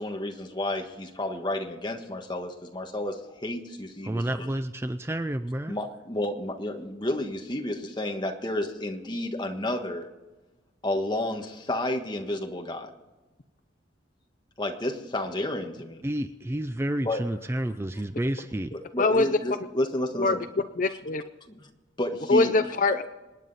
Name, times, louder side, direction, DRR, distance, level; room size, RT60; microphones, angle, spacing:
voice 1, 0.0-4.5 5.7-10.1 10.8-12.9 14.6-16.0 17.0-17.2 18.7-20.4 21.5-21.7 22.0-22.5, left 1 dB, 25° left, 3 dB, 1.5 m, -31 dB
voice 2, 4.0-5.8 16.0-18.7, right 1 dB, 15° right, 10 dB, 0.4 m, -30 dB
voice 3, 19.0-19.3 20.2-20.4 20.8-21.2 22.3-23.1, left 3 dB, 45° left, 9 dB, 0.6 m, -23 dB
27.0 x 9.6 x 4.1 m, 1.2 s
head